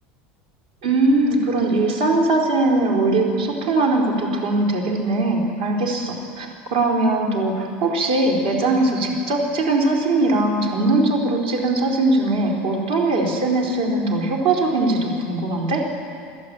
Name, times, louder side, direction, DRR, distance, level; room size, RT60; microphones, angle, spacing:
voice 1, 0.8-15.9, right 2 dB, 70° right, 0 dB, 4.3 m, -20 dB
27.5 x 12.5 x 8.5 m, 2.4 s
supercardioid pair, 170°, 5 cm